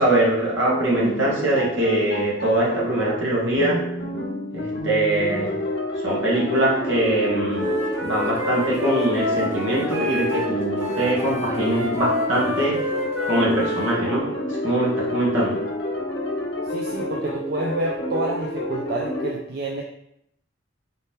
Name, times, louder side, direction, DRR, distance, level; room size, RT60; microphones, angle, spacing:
voice 1, 0.0-3.8 4.5-5.6 6.0-7.7 8.0-12.8 13.3-14.3 14.6-15.7, right 1 dB, 70° right, -5 dB, 1.3 m, -22 dB
sound 1, 0.7-19.3, left 1 dB, 55° left, 0.7 m, -29 dB
Wind instrument woodwind instrument, 7.5-10.5 10.8-14.0, left 1 dB, 10° right, 0.9 m, -29 dB
voice 2, 16.7-19.8, right 2 dB, 50° right, 0 dB, 0.4 m, -28 dB
4.1 x 2.8 x 3.5 m, 0.77 s
head